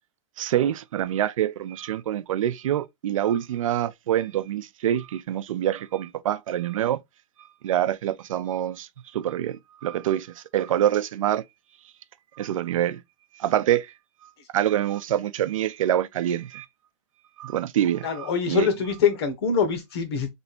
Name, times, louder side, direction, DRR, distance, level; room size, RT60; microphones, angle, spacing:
voice 1, 0.4-7.0 7.6-11.4 12.4-13.0 13.3-13.9 14.5-16.7 17.4-18.7, right 11 dB, 90° right, 0.6 m, -26 dB
voice 2, 18.0-20.3, left 6 dB, 50° left, 1.4 m, -24 dB
3.4 x 2.6 x 4.3 m
supercardioid pair, 175°, 17 cm